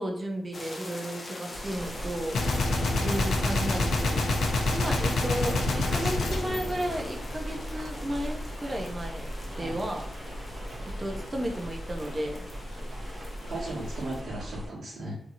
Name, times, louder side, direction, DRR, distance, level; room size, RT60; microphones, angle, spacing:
voice 1, 0.0-2.4 3.0-4.3 4.7-10.0 11.0-12.4, right 1 dB, 20° right, 1 dB, 0.5 m, -33 dB
sound 1, 0.5-14.2, left 2 dB, 35° left, 0.5 m, -44 dB
sound 2, 1.5-14.7, equal, 55° right, 1.0 m, -38 dB
Gunshot gunfire, 2.3-7.6, left 2 dB, 85° left, 0.5 m, -27 dB
voice 2, 5.6-6.3 9.6-9.8 12.9-13.0 13.5-15.2, right 1 dB, 85° right, -10 dB, 1.1 m, -38 dB
2.7 x 2.6 x 2.6 m, 0.68 s
wide cardioid pair, 145°, 0 cm